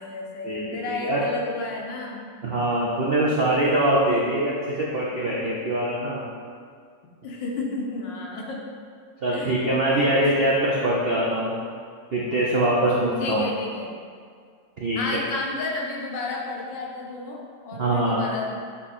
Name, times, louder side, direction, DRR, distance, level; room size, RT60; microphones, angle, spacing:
voice 1, 0.0-2.2 7.2-8.6 9.3-9.5 9.9-10.1 13.2-13.9 14.9-18.4, left 2 dB, 85° left, -1 dB, 1.6 m, -32 dB
voice 2, 0.9-1.2 2.4-6.2 9.2-11.5 12.1-13.4 14.8-15.0 17.7-18.2, right 1 dB, 70° right, -5 dB, 0.5 m, -23 dB
7.3 x 3.2 x 4.2 m, 2.1 s
omnidirectional pair, 1.9 m